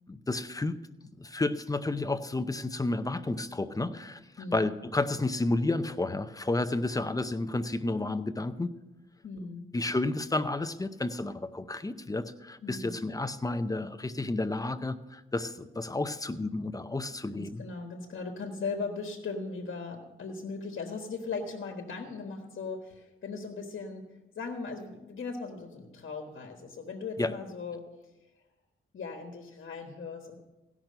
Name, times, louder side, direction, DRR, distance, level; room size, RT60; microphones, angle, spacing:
voice 1, 0.1-0.8 1.2-8.7 9.7-17.6 27.2-27.3, left 2 dB, 15° left, 11 dB, 0.6 m, -31 dB
voice 2, 4.4-4.7 9.2-9.7 12.6-13.0 17.3-27.8 28.9-30.4, left 4 dB, 65° left, 3 dB, 1.4 m, -38 dB
16.5 x 6.1 x 6.6 m, 1.0 s
wide cardioid pair, 110°, 21 cm